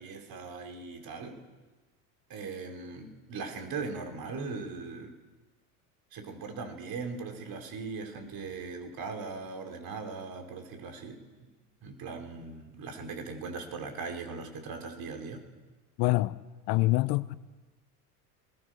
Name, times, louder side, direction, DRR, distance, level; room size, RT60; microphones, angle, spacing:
voice 1, 0.0-1.4 2.3-5.2 6.1-11.5 11.8-15.4, right 4 dB, 45° right, 5.1 m, -39 dB
voice 2, 16.0-16.4 16.7-17.4, left 20 dB, 60° left, 1.2 m, -25 dB
26.0 x 21.0 x 6.8 m
hypercardioid pair, 90°, 46 cm